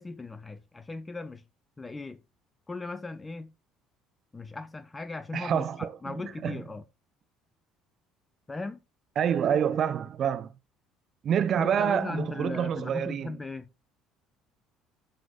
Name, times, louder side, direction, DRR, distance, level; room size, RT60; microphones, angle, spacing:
voice 1, 0.0-1.4 1.8-2.2 2.7-3.5 4.3-6.8 8.5-8.8 11.6-13.7, left 3 dB, 20° left, 0.5 m, -37 dB
voice 2, 5.3-6.0 6.4-6.6 9.2-10.5 11.2-13.4, right 8 dB, 45° right, 0.4 m, -27 dB
11.5 x 4.0 x 2.5 m
figure-of-eight pair, 55°, 0 cm